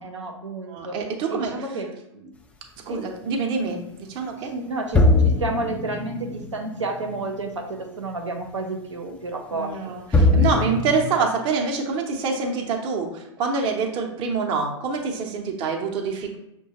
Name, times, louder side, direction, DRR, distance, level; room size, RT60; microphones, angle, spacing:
voice 1, 0.0-1.0 1.3-2.3 2.9-3.0 4.3-9.9, right 2 dB, 80° right, 1 dB, 0.7 m, -31 dB
voice 2, 0.7-1.5 2.9-3.8 4.1-4.5 9.5-16.4, right 4 dB, 30° right, 2 dB, 0.7 m, -26 dB
circular hand drum half volume slowed, 4.9-7.9 8.2-8.3 10.1-11.0, left 2 dB, 10° left, 0.4 m, -21 dB
6.0 x 2.2 x 2.8 m, 0.82 s
figure-of-eight pair, 100°, 15 cm